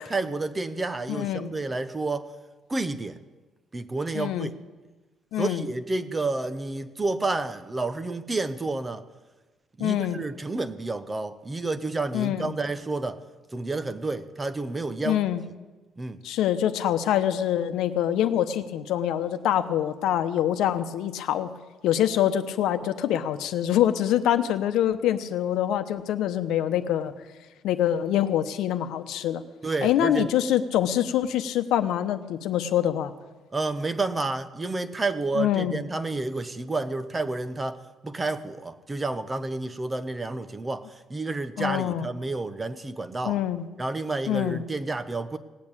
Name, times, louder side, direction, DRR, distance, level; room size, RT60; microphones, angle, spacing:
voice 1, 0.0-2.3 2.7-3.2 3.7-4.5 5.4-9.0 9.8-13.2 13.5-15.2 16.0-16.2 29.6-30.3 33.5-43.4 43.8-45.4, right 3 dB, 15° right, 11 dB, 0.7 m, -30 dB
voice 2, 1.1-1.5 4.1-4.5 5.3-5.6 9.8-10.2 12.1-12.5 15.0-15.4 16.2-21.5 21.8-27.1 27.6-29.4 29.8-33.1 35.4-35.8 41.6-42.1 43.2-43.7 44.3-44.6, left 11 dB, 75° left, 10 dB, 0.9 m, -25 dB
18.0 x 8.7 x 8.7 m, 1.2 s
cardioid pair, 165°, 0 cm